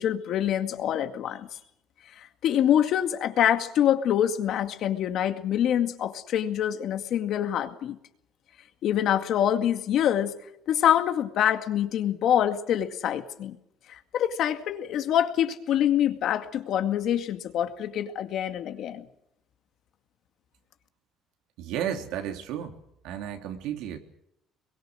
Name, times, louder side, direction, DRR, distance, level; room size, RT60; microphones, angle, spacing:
voice 1, 0.0-1.6 2.2-8.0 8.8-10.3 10.7-13.6 13.9-19.0, left 10 dB, 55° left, 8 dB, 2.1 m, -25 dB
voice 2, 21.6-22.8 23.0-24.0, right 9 dB, 85° right, 5 dB, 3.2 m, -33 dB
25.0 x 22.5 x 6.5 m, 0.78 s
cardioid pair, 160°, 0 cm